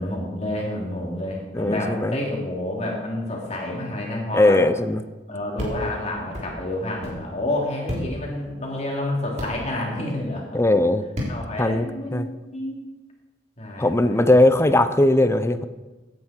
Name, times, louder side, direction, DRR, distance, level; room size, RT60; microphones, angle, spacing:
voice 1, 0.0-4.6 5.3-10.6 11.3-12.8 13.6-14.5, left 1 dB, 40° left, -2 dB, 3.3 m, -29 dB
voice 2, 1.5-2.2 4.3-5.0 10.5-11.0 11.6-11.9 12.1-12.3 13.8-15.7, left 1 dB, 15° left, 11 dB, 0.6 m, -19 dB
sound 1, 5.6-5.7 6.3-6.5 7.0-7.2 7.9-8.0 9.4-9.5 11.1-11.3, left 1 dB, 40° right, 3.7 m, -29 dB
16.5 x 9.6 x 4.5 m, 1.2 s
head